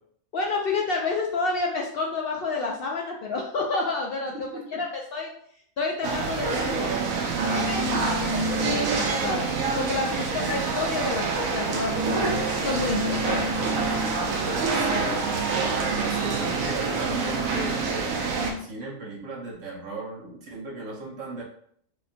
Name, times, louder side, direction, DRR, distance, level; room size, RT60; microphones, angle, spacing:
voice 1, 0.3-4.5 4.8-5.3 5.8-6.9 7.4-12.3 12.6-13.7, left 3 dB, 60° left, -1 dB, 0.6 m, -30 dB
voice 2, 4.3-4.8 7.1-7.2 7.7-8.0 14.7-21.4, right 2 dB, 70° right, -3 dB, 1.3 m, -36 dB
sound 1, 6.0-18.5, right 3 dB, 90° right, 1.1 m, -26 dB
4.9 x 2.6 x 2.5 m, 0.65 s
omnidirectional pair, 1.4 m